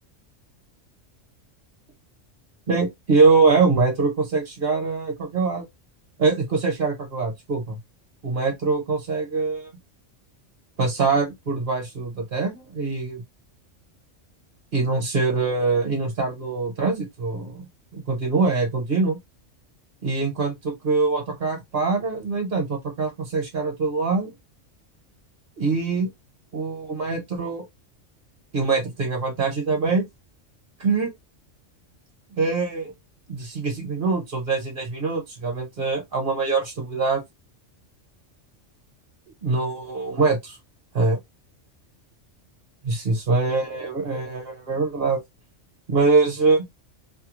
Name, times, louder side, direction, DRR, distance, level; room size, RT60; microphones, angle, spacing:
voice 1, 2.7-5.6 6.2-7.8 8.2-9.7 10.8-13.2 14.7-17.6 17.9-19.2 20.0-24.3 25.6-26.1 26.5-27.6 28.5-30.0 30.8-31.1 32.3-32.9 33.3-37.2 39.4-40.6 40.9-41.2 42.8-45.2 45.9-46.6, right 4 dB, 50° right, 1.2 m, -23 dB
2.7 x 2.2 x 3.0 m
omnidirectional pair, 1.3 m